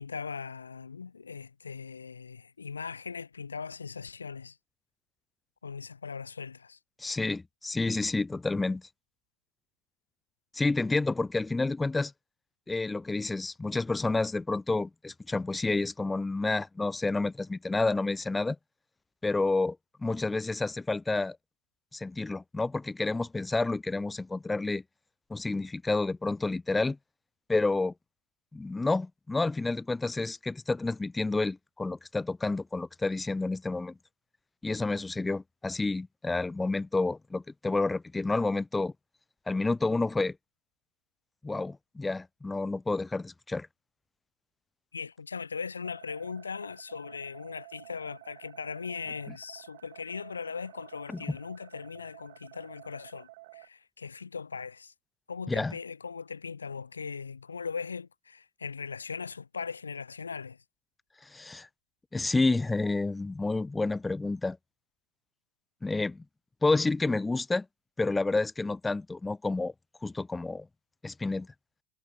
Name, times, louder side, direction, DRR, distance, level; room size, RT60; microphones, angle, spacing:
voice 1, 0.0-4.6 5.6-6.8 44.9-54.9 55.3-60.6, left 5 dB, 85° left, 1.1 m, -39 dB
voice 2, 7.0-8.8 10.5-12.1 12.7-18.6 19.2-21.4 21.9-24.8 25.3-27.0 27.5-27.9 28.5-33.9 34.6-38.9 39.5-40.4 41.4-43.7 51.1-51.2 55.5-55.7 61.3-61.7 62.1-64.6 65.8-66.2 66.6-67.7 68.0-69.7 70.0-70.7 71.0-71.5, left 3 dB, 10° left, 0.5 m, -29 dB
sound 1, 45.8-53.7, right 22 dB, 60° right, 3.0 m, -52 dB
hypercardioid pair, 90°, 0 cm